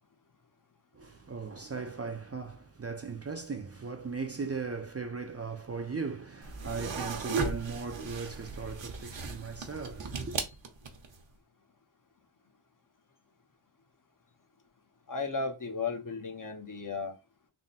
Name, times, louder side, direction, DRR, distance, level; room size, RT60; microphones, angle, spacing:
voice 1, 0.9-10.4, right 5 dB, 30° right, 0.5 m, -38 dB
sound 1, 6.4-11.2, right 4 dB, 65° right, 0.9 m, -36 dB
voice 2, 15.1-17.2, left 4 dB, 40° left, 0.8 m, -35 dB
3.6 x 2.1 x 4.0 m
wide cardioid pair, 90°, 48 cm